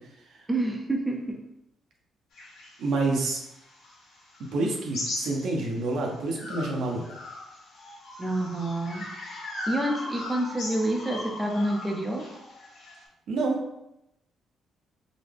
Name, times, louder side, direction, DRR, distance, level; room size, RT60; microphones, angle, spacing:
voice 1, 0.5-1.4 8.2-9.1 9.7-12.3, right 1 dB, 10° right, 1 dB, 0.6 m, -28 dB
sound 1, 2.3-5.9 6.3-13.0, left 1 dB, 80° left, 1.4 m, -39 dB
voice 2, 2.8-3.4 4.5-7.0 13.3-13.6, right 2 dB, 75° right, 0 dB, 0.8 m, -28 dB
3.9 x 2.2 x 3.4 m, 0.84 s
cardioid pair, 90°, 0 cm